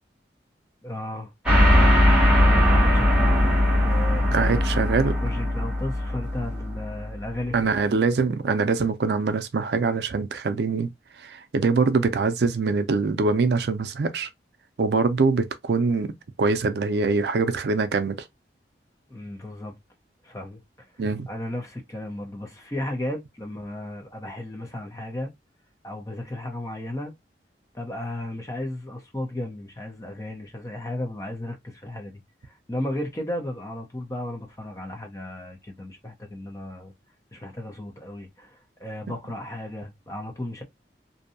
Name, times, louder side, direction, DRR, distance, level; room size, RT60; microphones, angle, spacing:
voice 1, 0.8-1.9 2.3-3.5 3.8-4.9 5.2-7.7 19.1-19.7 20.2-20.6 20.9-25.3 25.8-27.1 27.7-36.9 37.3-40.6, left 1 dB, 20° left, 0.6 m, -34 dB
sound 1, 1.5-7.3, left 1 dB, 5° right, 0.9 m, -20 dB
voice 2, 4.3-5.1 7.5-10.9 11.2-14.3 14.8-16.1 16.4-18.2 21.0-21.3, right 4 dB, 65° right, 0.4 m, -23 dB
2.7 x 2.2 x 2.5 m
head